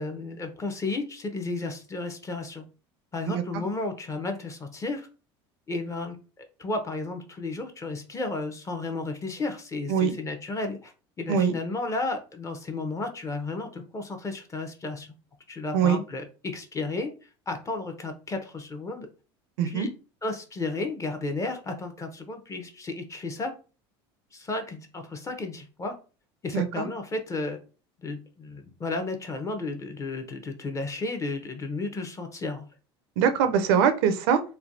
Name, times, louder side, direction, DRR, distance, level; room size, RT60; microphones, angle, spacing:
voice 1, 0.0-2.6 3.1-5.1 5.7-10.9 11.2-15.1 15.5-17.1 17.5-19.1 19.6-19.9 20.2-23.5 24.3-25.9 26.4-27.6 28.0-32.6, left 3 dB, 25° left, 6 dB, 0.7 m, -33 dB
voice 2, 19.6-19.9 26.5-26.9 33.2-34.4, right 7 dB, 75° right, 9 dB, 0.5 m, -22 dB
3.3 x 2.3 x 2.5 m, 0.34 s
supercardioid pair, 90°, 13 cm